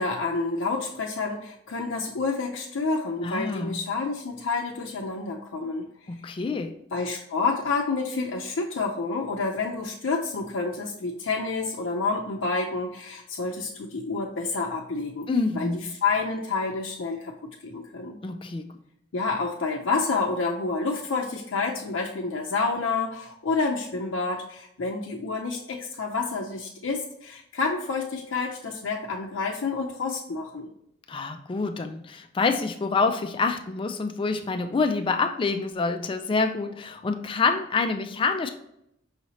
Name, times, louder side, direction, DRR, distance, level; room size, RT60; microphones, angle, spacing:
voice 1, 0.0-5.9 6.9-15.3 15.5-17.3 17.6-18.2 19.1-30.7, left 4 dB, 80° left, -1 dB, 0.5 m, -29 dB
voice 2, 3.2-3.8 6.1-6.8 15.3-15.8 18.2-18.7 31.1-38.5, left 4 dB, 25° left, 7 dB, 0.3 m, -27 dB
5.6 x 2.8 x 3.0 m, 0.77 s
head